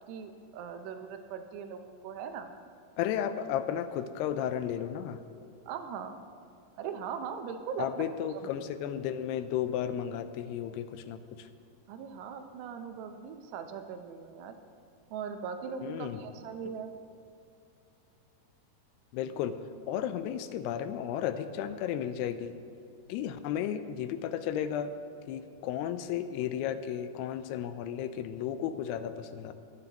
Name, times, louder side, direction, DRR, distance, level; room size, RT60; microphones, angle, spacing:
voice 1, 0.1-2.5 5.7-6.1 6.8-8.5 11.9-14.5 15.1-16.9, right 6 dB, 90° right, 6 dB, 3.0 m, -40 dB
voice 2, 3.0-5.2 7.8-11.5 15.8-16.2 19.1-19.6 19.9-22.6 23.1-24.9 25.3-29.5, left 9 dB, 85° left, 11 dB, 2.6 m, -33 dB
22.0 x 9.6 x 3.0 m, 2.6 s
omnidirectional pair, 4.7 m